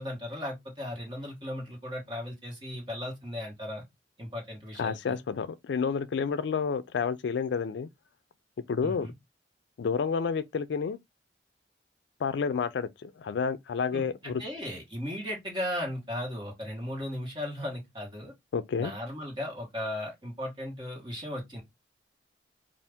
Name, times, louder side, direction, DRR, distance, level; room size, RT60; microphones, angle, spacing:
voice 1, 0.0-3.8 4.2-5.2 8.8-9.1 13.9-18.3 18.8-21.6, left 1 dB, 25° right, 1.4 m, -36 dB
voice 2, 4.8-7.9 8.7-9.1 9.8-11.0 12.2-14.4 18.5-18.9, left 6 dB, 80° left, 0.4 m, -30 dB
2.7 x 2.5 x 3.4 m
head